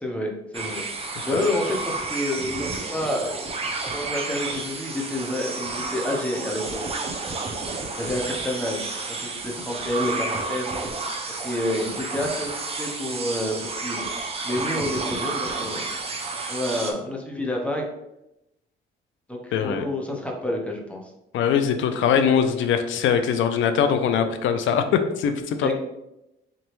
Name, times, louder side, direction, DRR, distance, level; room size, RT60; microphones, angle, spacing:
voice 1, 0.0-0.8 1.2-3.6 3.9-6.8 7.8-10.7 11.4-12.5 12.8-14.0 14.4-15.9 16.5-17.8 19.3-21.0 25.6-25.7, left 1 dB, 5° left, 0 dB, 0.9 m, -29 dB
sound 1, 0.5-16.9, right 3 dB, 30° right, 0.7 m, -31 dB
voice 2, 19.5-19.8 21.3-24.8 25.2-25.7, left 7 dB, 75° left, 8 dB, 0.5 m, -22 dB
3.8 x 3.4 x 3.1 m, 0.88 s
cardioid pair, 90°, 20 cm